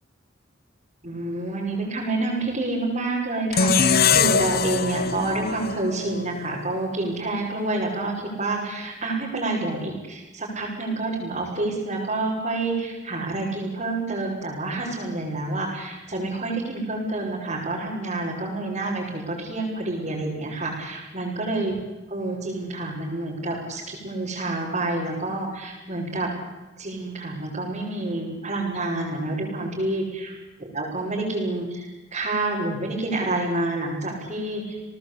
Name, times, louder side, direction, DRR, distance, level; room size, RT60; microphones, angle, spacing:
voice 1, 1.0-21.7 22.1-26.3 26.8-30.3 30.6-34.8, right 2 dB, 40° right, -5 dB, 6.0 m, -28 dB
sound 1, 3.5-6.7, left 6 dB, 55° left, 1.1 m, -22 dB
30.0 x 19.0 x 8.6 m, 1.1 s
head